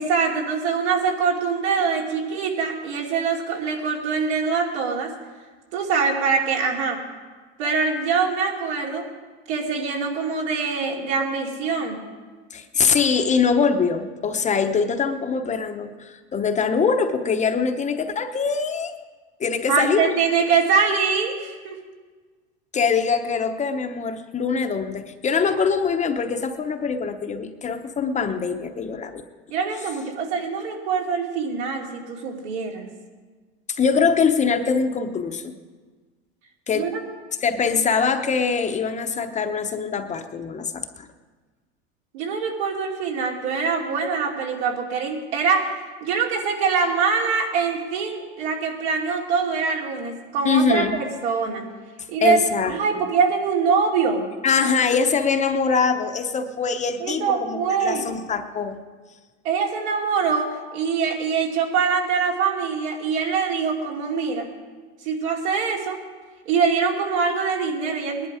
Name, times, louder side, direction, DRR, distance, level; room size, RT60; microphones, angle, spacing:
voice 1, 0.0-5.1 5.7-7.0 7.6-9.1 9.5-12.0 19.7-21.8 29.5-32.8 36.7-37.0 42.1-51.6 52.1-52.4 52.7-54.3 57.0-58.1 59.4-64.5 65.0-66.0 66.5-68.3, right 5 dB, 80° right, 0 dB, 2.8 m, -24 dB
voice 2, 12.5-18.9 19.4-20.1 22.7-29.2 33.7-35.6 36.7-36.9 37.4-41.1 50.4-51.0 52.2-53.0 54.4-58.8, left 5 dB, 20° left, 6 dB, 0.8 m, -23 dB
19.5 x 11.0 x 4.9 m, 1.4 s
supercardioid pair, 130°, 33 cm